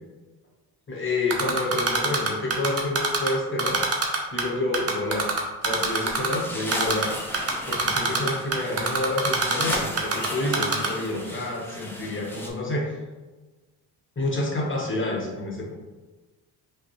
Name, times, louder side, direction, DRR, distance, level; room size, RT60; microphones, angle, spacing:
voice 1, 0.9-3.8 4.3-5.3 5.6-7.1 7.7-12.9 14.2-15.7, left 2 dB, 25° left, -2 dB, 1.3 m, -28 dB
Typing, 1.3-3.3 3.6-4.4 4.7-6.3 6.7-7.1 7.3-10.3 10.5-10.9, right 4 dB, 30° right, 0.9 m, -23 dB
sound 1, 5.6-12.5, left 1 dB, 5° left, 0.9 m, -35 dB
5.0 x 2.4 x 3.1 m, 1.2 s
hypercardioid pair, 55°, 45 cm